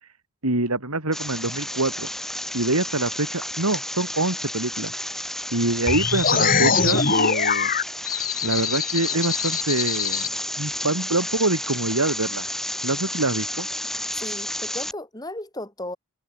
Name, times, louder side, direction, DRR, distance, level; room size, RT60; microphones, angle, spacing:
voice 1, 0.4-2.1 2.5-4.9 5.5-7.7 8.4-10.3 10.6-12.5 12.8-13.7, right 2 dB, 90° right, 5.0 m, -25 dB
sound 1, 1.1-14.9, left 1 dB, ahead, 3.8 m, -32 dB
sound 2, 5.9-10.3, left 6 dB, 40° left, 4.4 m, -23 dB
voice 2, 14.2-16.0, left 1 dB, 15° left, 6.5 m, -35 dB
head